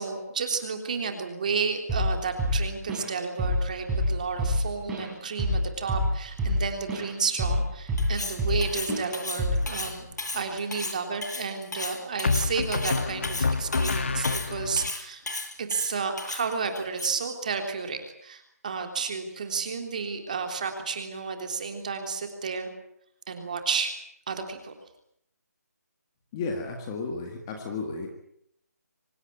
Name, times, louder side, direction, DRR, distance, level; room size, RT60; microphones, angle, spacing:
voice 1, 0.0-10.1 10.3-15.2 15.6-22.7 23.3-23.9 24.3-24.7, right 5 dB, 25° right, 5 dB, 3.3 m, -31 dB
Drum kit / Drum, 1.9-2.1 2.4-3.1 3.4-3.6 3.9-7.1 7.4-8.6 8.9-9.1 9.4-9.7, equal, 5° right, 4.2 m, -26 dB
Cutlery silverware, 8.0-17.3, left 2 dB, 85° left, 7.3 m, -35 dB
sound 1, 9.6-10.1 12.2-14.9, left 4 dB, 40° left, 1.6 m, -28 dB
voice 2, 26.3-28.1, left 4 dB, 10° left, 3 dB, 1.8 m, -33 dB
25.0 x 19.5 x 8.8 m, 0.74 s
hypercardioid pair, 180°, 9 cm